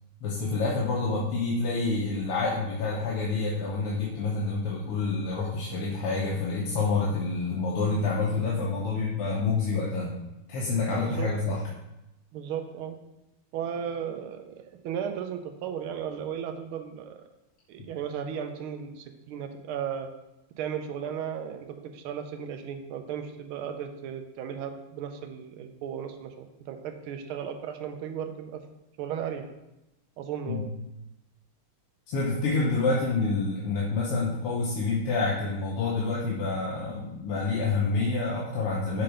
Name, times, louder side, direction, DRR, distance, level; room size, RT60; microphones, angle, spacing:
voice 1, 0.2-10.1 10.5-11.6 30.5-30.7 32.1-39.0, left 3 dB, 90° left, -5 dB, 1.9 m, -28 dB
voice 2, 11.0-11.3 12.3-13.0 13.5-17.2 17.7-20.1 20.6-28.6 29.0-29.5 30.2-30.6, right 8 dB, 75° right, 6 dB, 1.5 m, -35 dB
6.6 x 3.9 x 5.0 m, 0.93 s
omnidirectional pair, 2.4 m